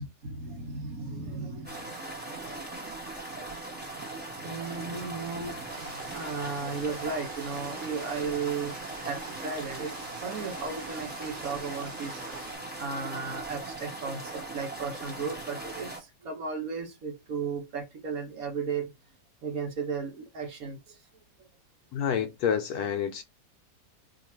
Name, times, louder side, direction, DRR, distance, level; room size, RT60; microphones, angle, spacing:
voice 1, 0.0-1.9 2.2-2.3 4.4-12.5 12.7-18.9 19.4-20.9, right 5 dB, 60° right, 1.4 m, -35 dB
sound 1, 1.6-16.0, right 2 dB, 5° right, 1.0 m, -39 dB
sound 2, 5.7-12.6, right 3 dB, 30° right, 0.8 m, -45 dB
voice 2, 21.9-23.2, left 8 dB, 70° left, 1.0 m, -28 dB
3.1 x 2.5 x 4.3 m
omnidirectional pair, 1.9 m